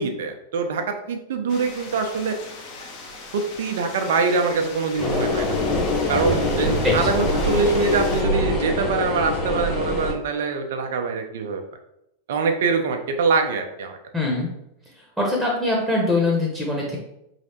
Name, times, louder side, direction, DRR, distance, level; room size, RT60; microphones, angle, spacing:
voice 1, 0.0-2.4 3.3-5.5 6.1-11.6 12.3-14.0, right 4 dB, 60° right, 5 dB, 0.4 m, -24 dB
sound 1, 1.5-8.2, left 3 dB, 45° left, 1.0 m, -38 dB
sound 2, 5.0-10.1, left 2 dB, 20° left, 1.3 m, -24 dB
voice 2, 14.1-14.5 15.2-17.0, left 2 dB, ahead, -2 dB, 1.0 m, -22 dB
4.8 x 3.2 x 2.8 m, 0.82 s
figure-of-eight pair, 90°, 0 cm